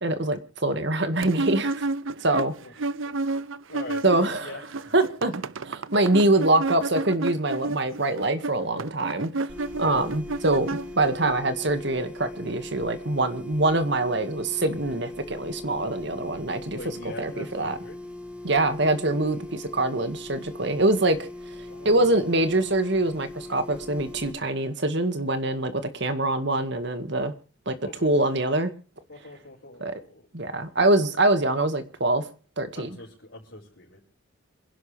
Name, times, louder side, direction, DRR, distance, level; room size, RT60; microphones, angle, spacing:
voice 1, 0.0-1.9 2.2-2.5 4.0-4.5 4.9-9.3 9.8-16.8 17.2-17.8 18.4-21.3 21.9-27.3 27.7-28.7 29.8-29.9 30.3-32.2 32.6-32.9, right 2 dB, 55° right, 9 dB, 2.0 m, -24 dB
Chair Sliding Quickly, 1.2-4.4 4.6-11.3, right 3 dB, 75° right, 0.6 m, -31 dB
voice 2, 3.7-4.0 4.4-4.6 5.2-5.5 9.8-10.0 16.8-18.0 21.7-22.3 27.8-28.3 29.1-30.3 31.6-31.7 32.8-34.0, left 2 dB, 60° left, -4 dB, 5.7 m, -43 dB
sound 1, 9.5-24.3, left 1 dB, 5° right, 2.3 m, -40 dB
27.0 x 11.5 x 3.4 m, 0.38 s
head